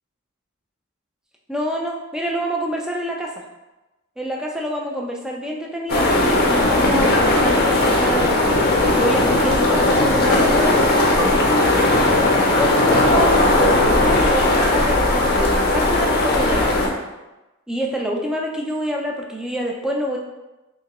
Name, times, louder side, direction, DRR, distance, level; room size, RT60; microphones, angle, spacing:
voice 1, 1.5-3.4 4.2-11.5 12.6-13.3 13.6-16.8 17.7-20.2, equal, 5° right, -1 dB, 0.3 m, -26 dB
sound 1, 5.9-16.9, left 2 dB, 45° left, 0.6 m, -17 dB
3.4 x 2.8 x 2.9 m, 1.0 s
head